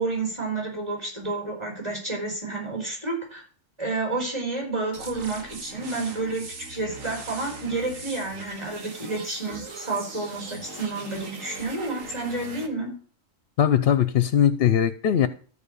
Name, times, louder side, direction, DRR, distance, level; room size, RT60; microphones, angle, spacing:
voice 1, 0.0-3.4 3.8-12.9, right 3 dB, 20° right, 4.5 m, -30 dB
sound 1, 4.9-12.7, right 3 dB, 85° right, 1.9 m, -40 dB
voice 2, 13.6-15.3, left 9 dB, 60° left, 0.8 m, -20 dB
13.5 x 4.9 x 6.8 m
omnidirectional pair, 1.3 m